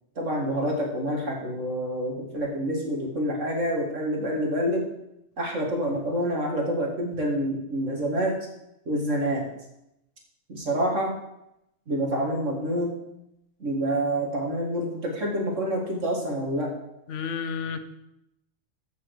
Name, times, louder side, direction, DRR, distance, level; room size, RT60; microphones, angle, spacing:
voice 1, 0.2-4.9 5.4-8.4 8.9-9.5 10.5-11.2 11.9-12.9 13.6-16.8, equal, 85° right, -1 dB, 2.6 m, -27 dB
voice 2, 17.1-17.8, left 6 dB, 75° left, 10 dB, 1.1 m, -31 dB
14.5 x 5.6 x 5.0 m, 0.85 s
omnidirectional pair, 1.3 m